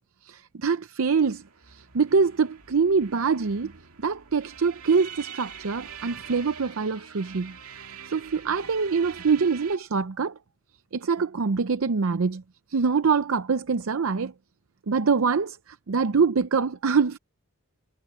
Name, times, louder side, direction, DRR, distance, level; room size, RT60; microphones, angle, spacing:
voice 1, 0.2-3.7 4.0-7.6 8.1-10.4 10.9-12.4 12.7-14.3 14.9-17.2, right 5 dB, 70° right, 0.6 m, -24 dB
sound 1, 1.1-9.8, right 7 dB, 90° right, 2.3 m, -44 dB
head